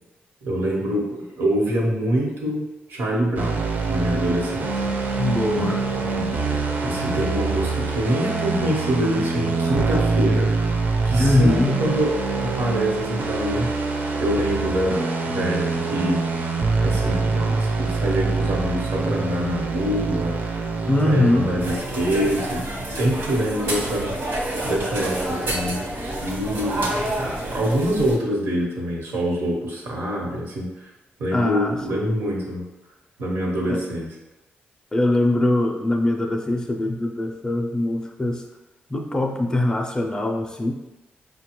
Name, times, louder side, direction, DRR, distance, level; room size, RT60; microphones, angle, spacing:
voice 1, 0.4-4.7 5.6-6.3 6.8-10.5 11.0-12.1 12.3-13.7 14.2-16.5 16.8-20.4 21.1-24.4 24.6-25.8 26.2-30.9 31.2-32.7 33.2-34.1, equal, 85° right, -2 dB, 1.0 m, -25 dB
sound 1, 3.4-21.8, right 4 dB, 45° right, 0.4 m, -25 dB
voice 2, 5.2-5.8 11.2-11.8 20.9-21.5 31.3-32.1 33.7-33.8 34.9-38.4 38.9-40.7, left 1 dB, 20° left, 2 dB, 0.4 m, -22 dB
sound 2, 21.6-28.2, right 1 dB, 70° right, 0.9 m, -28 dB
5.0 x 2.2 x 2.9 m, 1.0 s
wide cardioid pair, 145°, 4 cm